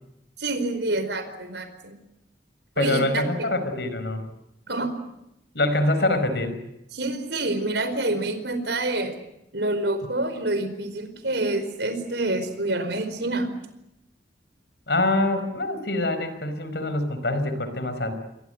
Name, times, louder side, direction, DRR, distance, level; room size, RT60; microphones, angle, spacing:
voice 1, 0.4-1.9 2.8-3.5 4.7-5.0 6.9-9.2 9.5-13.5, right 2 dB, 65° right, 10 dB, 4.8 m, -27 dB
voice 2, 2.8-4.2 5.5-6.6 14.9-18.1, left 1 dB, 65° left, 10 dB, 5.1 m, -25 dB
29.5 x 23.5 x 8.0 m, 0.85 s
head